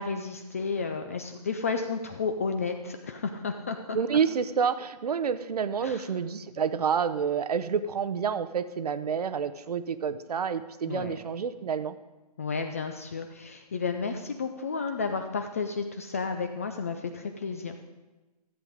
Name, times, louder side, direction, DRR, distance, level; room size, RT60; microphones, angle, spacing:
voice 1, 0.0-4.0 5.8-6.0 10.9-11.2 12.4-17.8, left 4 dB, 20° left, 6 dB, 0.4 m, -32 dB
voice 2, 3.9-12.0, right 7 dB, 70° right, 13 dB, 0.8 m, -28 dB
13.5 x 8.2 x 5.1 m, 1.1 s
hypercardioid pair, 165°, 21 cm